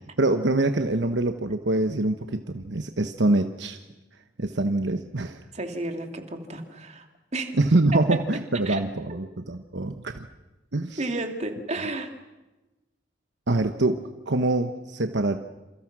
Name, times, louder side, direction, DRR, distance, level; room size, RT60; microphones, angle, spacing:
voice 1, 0.2-3.8 4.4-5.4 7.5-10.3 10.7-11.1 13.5-14.0 14.3-15.4, right 2 dB, 65° right, 7 dB, 1.1 m, -24 dB
voice 2, 5.5-7.1 7.3-7.5 8.7-8.8 11.0-12.1, right 2 dB, 40° right, 4 dB, 2.8 m, -32 dB
28.5 x 28.0 x 6.2 m, 1.1 s
head